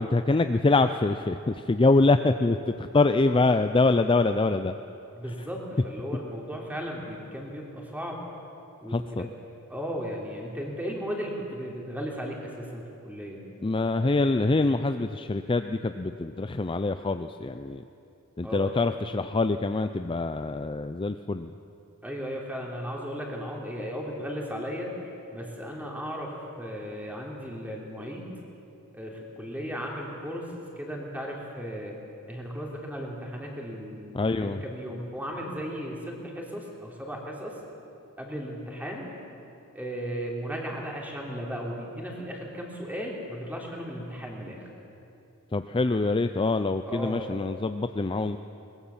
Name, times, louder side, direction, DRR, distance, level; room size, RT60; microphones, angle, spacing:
voice 1, 0.0-4.7 8.9-9.3 13.6-17.8 18.4-21.5 34.1-34.6 45.5-48.4, left 3 dB, 25° left, 9 dB, 0.5 m, -25 dB
voice 2, 5.2-8.2 8.8-9.2 9.7-13.4 18.4-18.7 22.0-24.9 25.3-28.3 28.9-32.0 32.3-37.6 38.2-39.1 39.7-44.7 46.9-47.3, equal, 5° right, -1 dB, 3.3 m, -36 dB
22.5 x 20.0 x 7.2 m, 2.7 s
head